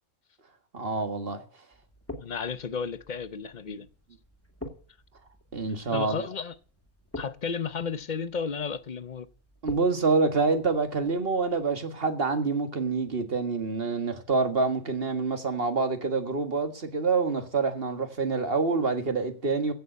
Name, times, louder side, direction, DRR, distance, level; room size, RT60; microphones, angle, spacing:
voice 1, 0.7-1.4 5.5-6.3 9.6-19.7, right 4 dB, 50° right, 1.9 m, -27 dB
sound 1, 1.7-11.7, left 1 dB, 10° left, 2.4 m, -47 dB
voice 2, 2.2-3.9 5.9-6.6 7.2-9.3, left 6 dB, 40° left, 0.8 m, -33 dB
15.5 x 6.9 x 8.0 m
omnidirectional pair, 1.3 m